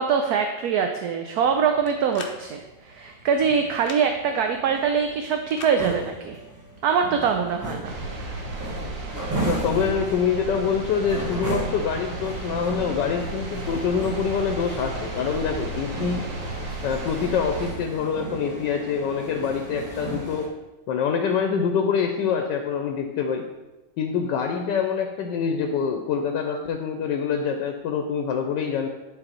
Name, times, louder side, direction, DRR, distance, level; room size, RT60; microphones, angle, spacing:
voice 1, 0.0-6.4 6.8-8.0, right 6 dB, 70° right, 5 dB, 1.0 m, -23 dB
sound 1, 1.4-20.5, right 2 dB, 15° right, 0.7 m, -36 dB
sound 2, 1.9-2.4 3.7-4.0 5.5-5.8, left 4 dB, 55° left, 0.6 m, -38 dB
sound 3, 7.8-17.7, right 2 dB, 50° right, 1.4 m, -34 dB
voice 2, 9.4-16.3 16.8-20.5 20.9-23.5 24.0-28.9, left 6 dB, 85° left, 5 dB, 1.3 m, -25 dB
10.0 x 4.0 x 4.3 m, 1.1 s
omnidirectional pair, 1.9 m